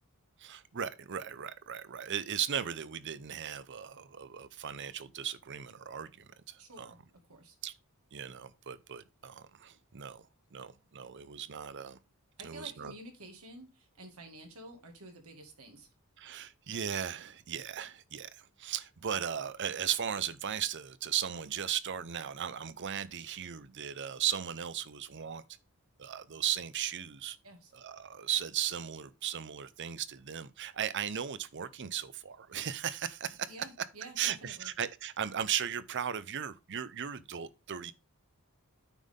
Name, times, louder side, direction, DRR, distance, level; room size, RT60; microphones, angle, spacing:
voice 1, 0.4-6.9 7.6-7.7 8.1-12.0 12.4-12.9 16.2-25.4 26.0-27.4 27.7-33.5 34.2-37.9, right 9 dB, 55° right, 0.6 m, -37 dB
voice 2, 6.6-7.0 7.3-7.6 12.4-15.9 27.4-27.7 33.5-34.7, right 1 dB, 90° right, 2.2 m, -50 dB
9.1 x 5.5 x 3.7 m
head